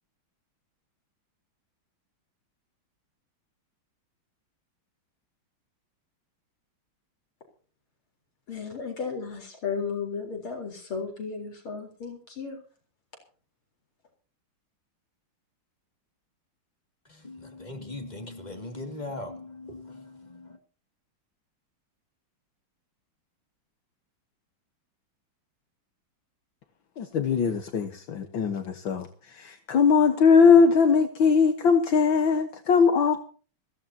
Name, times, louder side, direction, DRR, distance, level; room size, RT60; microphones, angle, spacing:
voice 1, 8.5-12.6, left 5 dB, 90° left, 4.9 m, -34 dB
voice 2, 17.1-20.6, left 2 dB, 20° left, 2.4 m, -40 dB
voice 3, 27.0-33.2, left 5 dB, 70° left, 2.0 m, -21 dB
21.0 x 16.0 x 2.9 m
omnidirectional pair, 2.3 m